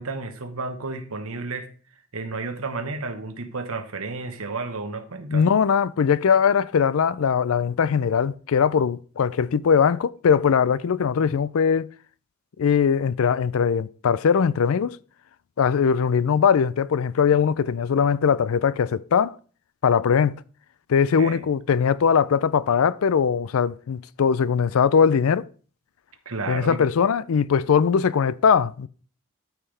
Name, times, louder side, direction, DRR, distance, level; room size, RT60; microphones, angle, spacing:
voice 1, 0.0-1.7 2.1-5.4 21.2-21.4 26.2-26.8, right 3 dB, 85° right, 1.2 m, -32 dB
voice 2, 5.3-11.9 12.6-15.0 15.6-19.4 19.8-20.4 20.9-25.5 26.5-28.9, left 6 dB, 80° left, 0.4 m, -20 dB
12.5 x 5.7 x 3.3 m
head